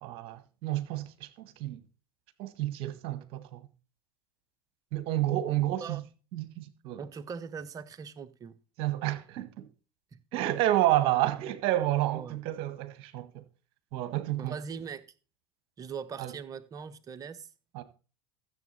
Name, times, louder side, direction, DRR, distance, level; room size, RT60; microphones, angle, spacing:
voice 1, 0.0-1.8 2.4-3.6 4.9-6.0 6.3-7.0 8.8-9.7 10.3-13.4 13.9-14.5 16.2-16.3 17.7-17.8, right 14 dB, 50° right, 1.5 m, -30 dB
voice 2, 5.5-6.0 7.0-8.6 12.1-12.4 14.4-15.0 15.8-17.5, right 6 dB, 30° right, 1.2 m, -41 dB
14.0 x 7.5 x 4.2 m
figure-of-eight pair, 80°, 13 cm